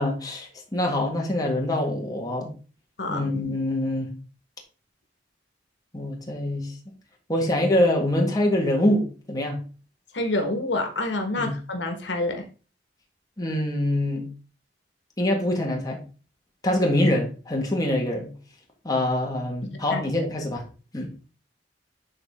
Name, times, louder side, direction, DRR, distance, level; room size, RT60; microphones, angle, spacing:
voice 1, 0.0-2.5 3.1-4.1 5.9-6.7 7.3-9.6 11.4-11.5 13.4-14.2 15.2-16.0 16.6-18.3 18.9-20.6 20.9-21.1, left 1 dB, 20° left, 0 dB, 1.6 m, -24 dB
voice 2, 10.1-12.4 19.6-20.0, left 2 dB, 75° left, 4 dB, 1.5 m, -28 dB
11.0 x 3.9 x 3.7 m, 0.36 s
head